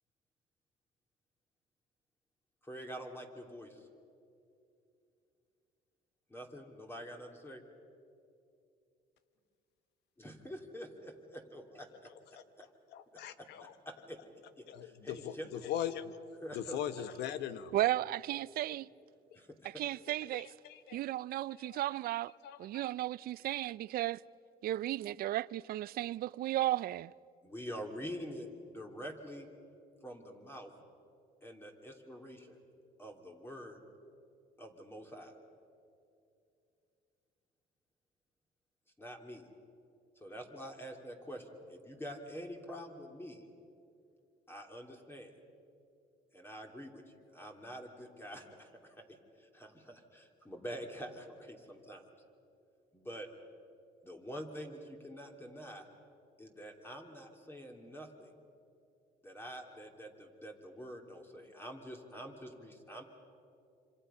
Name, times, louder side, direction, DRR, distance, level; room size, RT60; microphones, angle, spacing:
voice 1, 2.6-3.9 6.3-7.6 10.2-11.8 13.4-14.2 14.6-15.7 16.4-16.8 19.3-19.7 27.4-29.5 30.0-30.7 31.4-32.6 33.0-33.8 34.6-35.3 39.0-39.4 40.2-43.5 44.5-45.3 46.3-52.1 52.9-53.3 54.0-55.9 56.4-58.3 59.2-63.0, equal, 15° left, 2.8 m, -46 dB
voice 2, 12.0-12.4 12.9-13.8 14.7-17.7 20.2-21.0 21.6-21.8 22.4-22.8, left 10 dB, 80° left, 1.1 m, -41 dB
voice 3, 17.7-18.9 19.6-20.5 20.9-22.3 22.6-24.2 24.6-27.1, right 14 dB, 60° right, 0.5 m, -34 dB
26.0 x 26.0 x 5.7 m
cardioid pair, 110°, 17 cm